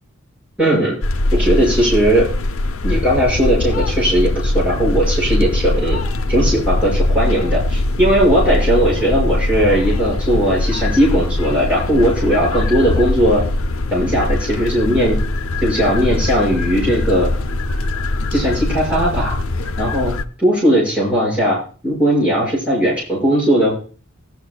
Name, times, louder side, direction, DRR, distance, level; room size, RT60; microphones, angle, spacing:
voice 1, 0.6-1.0 1.3-2.3 2.8-6.0 6.3-13.4 13.9-15.2 15.6-17.3 18.3-19.4 19.8-20.1 20.4-21.6 21.8-23.7, equal, 5° right, -8 dB, 5.9 m, -17 dB
sound 1, 1.0-20.2, left 2 dB, 70° left, 0.7 m, -21 dB
19.0 x 11.0 x 2.3 m, 0.38 s
head